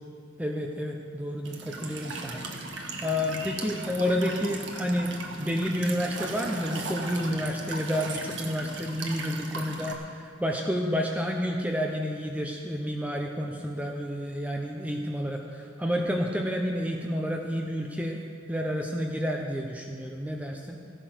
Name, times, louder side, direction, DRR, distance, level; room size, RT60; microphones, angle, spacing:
voice 1, 0.4-2.4 3.0-18.2 18.5-20.8, equal, 5° right, 1 dB, 0.7 m, -30 dB
Walk footsteps / Chirp tweet / Stream, 1.4-9.9, right 3 dB, 60° right, 1.6 m, -37 dB
15.0 x 10.0 x 6.2 m, 2.3 s
head